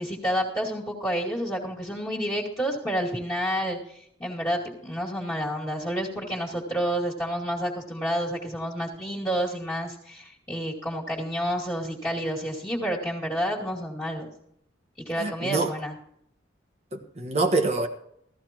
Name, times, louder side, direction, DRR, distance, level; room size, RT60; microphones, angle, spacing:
voice 1, 0.0-14.3 15.0-16.0, equal, 10° left, -7 dB, 2.4 m, -29 dB
voice 2, 15.2-15.7 16.9-17.9, right 3 dB, 35° right, 3 dB, 1.4 m, -25 dB
16.0 x 14.5 x 3.0 m, 0.71 s
head